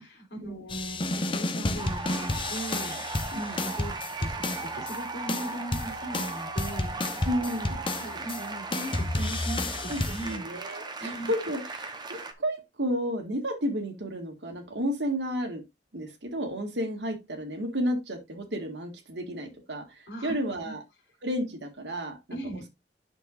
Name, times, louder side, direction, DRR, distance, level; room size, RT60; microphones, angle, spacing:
voice 1, 0.0-3.9 4.2-7.2 7.9-10.5 11.0-11.3 20.1-20.3 20.6-20.7 22.3-22.7, right 1 dB, 70° left, 3.1 m, -39 dB
sound 1, 0.7-5.0 5.3-8.4 8.7-10.4, left 2 dB, 30° left, 0.8 m, -31 dB
sound 2, 1.8-12.3, right 3 dB, 25° right, 1.0 m, -37 dB
voice 2, 7.2-7.8 9.9-15.6 15.9-20.8 21.2-22.2 22.4-22.7, equal, 85° right, 1.9 m, -32 dB
9.0 x 6.3 x 2.5 m
head